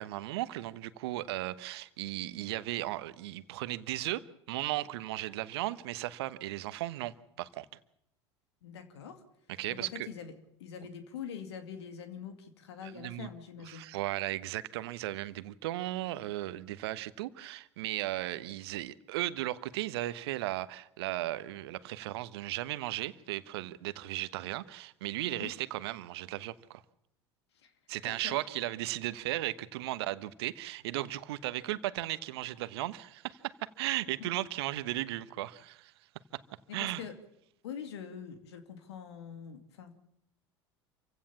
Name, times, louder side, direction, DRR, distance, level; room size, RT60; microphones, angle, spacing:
voice 1, 0.0-7.7 9.6-10.1 12.8-13.3 13.7-26.8 27.9-35.9 36.7-37.0, right 16 dB, 65° right, 1.1 m, -36 dB
voice 2, 8.6-9.2 9.7-10.3 10.6-13.9 25.3-25.5 27.6-27.7 28.1-28.4 34.2-34.3 36.7-37.1 37.6-40.0, left 7 dB, 70° left, 2.3 m, -44 dB
27.5 x 16.0 x 7.2 m
figure-of-eight pair, 75°, 14 cm